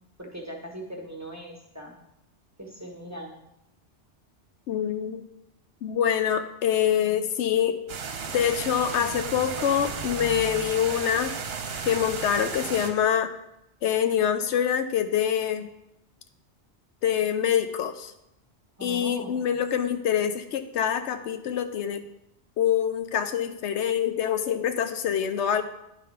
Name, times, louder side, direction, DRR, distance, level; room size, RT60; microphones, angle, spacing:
voice 1, 0.2-2.0 2.6-3.6 18.8-19.5, equal, 15° right, 0 dB, 1.2 m, -40 dB
voice 2, 4.7-5.2 5.8-7.8 8.3-11.3 11.8-13.3 13.8-15.7 17.0-18.1 18.8-22.0 22.6-25.6, left 9 dB, 80° left, 9 dB, 0.9 m, -25 dB
sound 1, 7.9-12.9, right 5 dB, 65° right, 1.0 m, -34 dB
10.0 x 3.7 x 5.6 m, 0.84 s
omnidirectional pair, 1.2 m